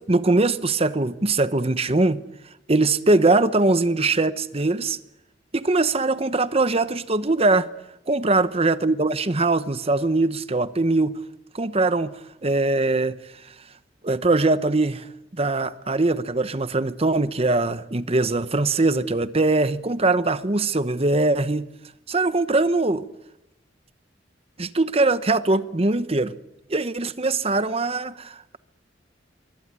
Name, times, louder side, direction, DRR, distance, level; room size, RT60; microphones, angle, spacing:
voice 1, 0.1-2.2 2.7-5.0 5.5-7.7 8.1-11.1 11.5-13.2 14.0-21.7 22.1-23.1 24.6-26.3 26.7-28.6, right 2 dB, 30° right, 1.0 m, -22 dB
26.5 x 23.5 x 9.6 m
head